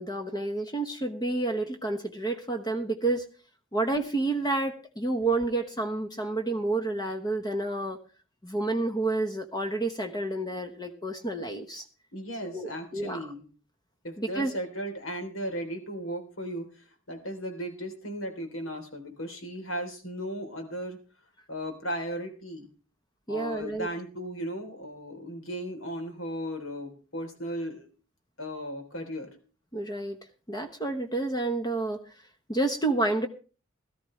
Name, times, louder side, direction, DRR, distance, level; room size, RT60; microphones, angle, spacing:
voice 1, 0.0-3.3 3.7-8.0 8.4-11.8 12.4-13.2 14.2-14.5 23.3-23.9 29.7-30.2 30.5-32.0 32.5-33.3, right 2 dB, 20° left, 5 dB, 1.1 m, -29 dB
voice 2, 12.1-13.5 14.0-21.0 21.5-22.7 23.3-27.8 28.4-29.4, equal, 85° left, 5 dB, 3.6 m, -36 dB
17.5 x 13.5 x 3.2 m, 0.36 s
head